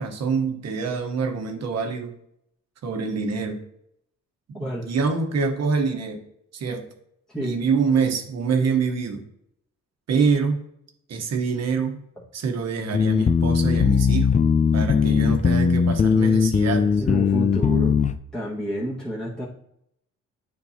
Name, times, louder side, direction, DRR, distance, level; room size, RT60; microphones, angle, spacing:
voice 1, 0.0-2.1 2.8-3.6 4.5-6.2 6.5-6.9 7.4-9.2 10.1-10.6 11.1-12.0 12.3-14.3 14.7-17.0, right 5 dB, 60° right, 4 dB, 1.2 m, -25 dB
voice 2, 4.5-4.9 7.3-7.6 17.0-18.0 18.3-19.5, equal, ahead, -8 dB, 1.7 m, -29 dB
sound 1, 12.9-18.1, left 6 dB, 25° left, 0.4 m, -19 dB
8.2 x 4.5 x 2.9 m, 0.76 s
cardioid pair, 90°, 30 cm